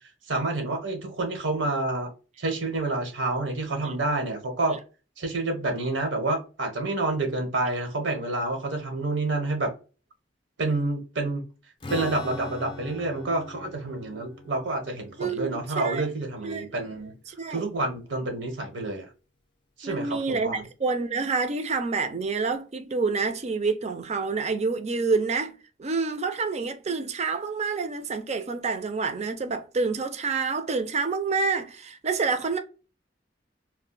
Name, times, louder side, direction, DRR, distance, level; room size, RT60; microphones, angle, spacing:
voice 1, 0.3-2.1 2.4-4.8 5.2-9.7 10.6-11.4 11.9-17.1 17.5-19.1 19.8-20.6, right 2 dB, 85° right, 1.0 m, -28 dB
Strum, 11.8-17.4, left 2 dB, 30° left, 0.4 m, -42 dB
voice 2, 15.2-16.1 16.4-16.7 17.3-17.7 19.8-32.6, right 4 dB, 40° right, 0.4 m, -28 dB
2.4 x 2.1 x 3.9 m
head